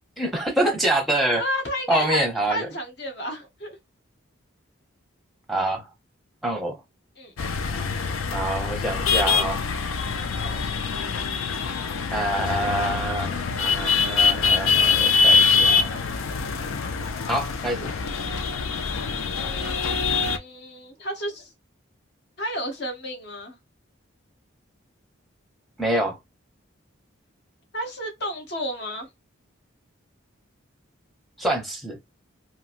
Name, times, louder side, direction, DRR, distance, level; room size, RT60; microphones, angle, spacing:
voice 1, 0.2-1.4 1.9-2.7 5.5-5.8 6.4-6.8 8.3-9.6 12.1-16.0 17.3-17.9 25.8-26.2 31.4-32.0, right 1 dB, ahead, 0.7 m, -26 dB
voice 2, 1.4-2.2 2.5-3.8 7.2-7.3 10.3-10.6 19.1-21.5 22.4-23.6 27.7-29.1, equal, 55° left, 0.9 m, -32 dB
sound 1, 7.4-20.4, left 5 dB, 85° left, 0.5 m, -24 dB
3.0 x 2.5 x 2.5 m
head